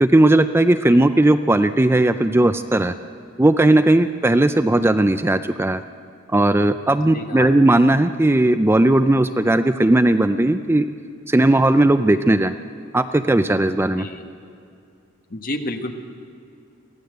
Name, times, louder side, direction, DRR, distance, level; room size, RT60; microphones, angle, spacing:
voice 1, 0.0-2.9 3.4-5.8 6.3-10.9 11.3-12.5 12.9-14.1, right 1 dB, 10° right, 10 dB, 0.4 m, -17 dB
voice 2, 7.1-7.5 14.0-14.2 15.3-15.9, left 1 dB, 45° left, 5 dB, 1.5 m, -30 dB
23.0 x 16.0 x 7.9 m, 2.4 s
head